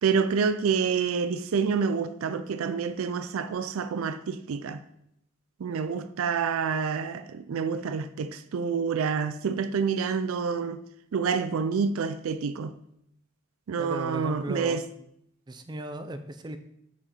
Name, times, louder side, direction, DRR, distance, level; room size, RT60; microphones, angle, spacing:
voice 1, 0.0-4.8 5.6-10.8 11.1-12.8 13.7-14.8, right 6 dB, 90° right, 0.4 m, -28 dB
voice 2, 13.8-14.8 15.5-16.6, right 1 dB, 20° right, 0.4 m, -36 dB
7.3 x 5.3 x 4.1 m
head